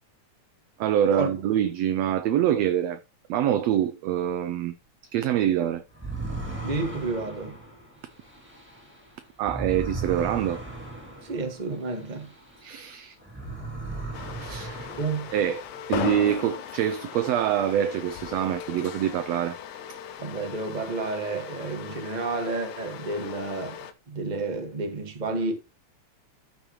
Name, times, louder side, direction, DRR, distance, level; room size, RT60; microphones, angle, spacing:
voice 1, 0.8-3.0 3.3-4.7 5.1-5.8 9.4-10.6 12.6-13.2 14.4-14.9 15.3-15.6 15.9-19.6, right 10 dB, 80° right, 1.5 m, -25 dB
sound 1, 5.9-12.9 13.2-15.9, right 2 dB, 5° right, 2.4 m, -37 dB
voice 2, 6.6-7.6 11.2-12.3 14.9-15.3 20.2-23.8 24.1-25.5, right 3 dB, 20° right, 1.3 m, -30 dB
sound 2, 14.1-23.9, left 9 dB, 80° left, 2.2 m, -38 dB
12.5 x 6.3 x 3.1 m
omnidirectional pair, 3.5 m